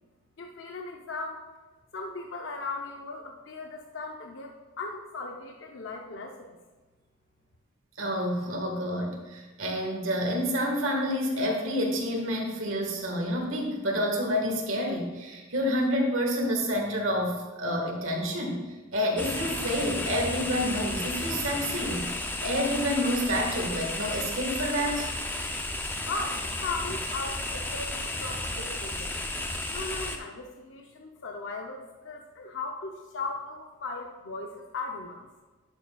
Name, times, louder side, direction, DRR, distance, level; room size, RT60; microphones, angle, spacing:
voice 1, 0.4-1.4 1.9-6.5 26.0-29.2 29.7-35.3, left 3 dB, 60° left, 2 dB, 0.6 m, -37 dB
voice 2, 8.0-18.6 18.9-25.1, equal, 70° right, 0 dB, 1.5 m, -28 dB
sound 1, 19.2-30.2, left 2 dB, 10° left, 0.4 m, -33 dB
10.5 x 6.7 x 2.3 m, 1.3 s
head